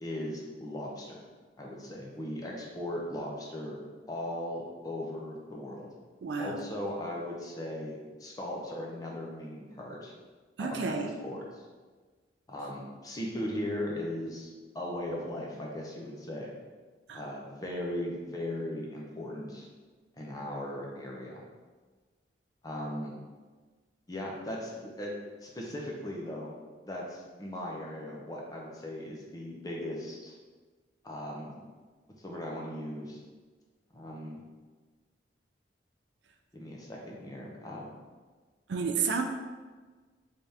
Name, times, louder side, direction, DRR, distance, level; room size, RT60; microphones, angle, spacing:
voice 1, 0.0-1.2 1.6-3.8 4.1-5.9 6.4-10.1 10.6-11.6 12.5-14.5 14.7-16.5 17.1-19.7 20.2-21.4 22.6-23.2 24.1-25.1 25.4-26.6 26.8-30.3 31.0-31.6 32.2-33.2 33.9-34.4 36.5-37.9, left 1 dB, 20° left, -2 dB, 0.5 m, -38 dB
voice 2, 6.2-6.6 10.6-11.1 17.1-17.2 38.7-39.2, right 5 dB, 70° right, 4 dB, 0.4 m, -31 dB
3.4 x 3.4 x 2.7 m, 1.4 s
head